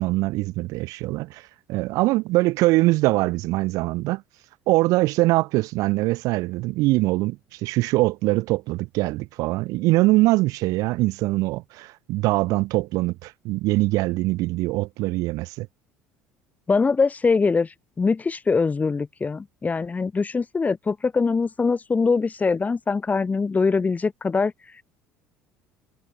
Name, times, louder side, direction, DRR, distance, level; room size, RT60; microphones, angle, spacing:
voice 1, 0.0-1.4 1.7-4.2 4.7-15.7, right 20 dB, 70° right, 1.6 m, -23 dB
voice 2, 16.7-24.5, left 4 dB, 25° left, 6.2 m, -23 dB
supercardioid pair, 80°, 6 cm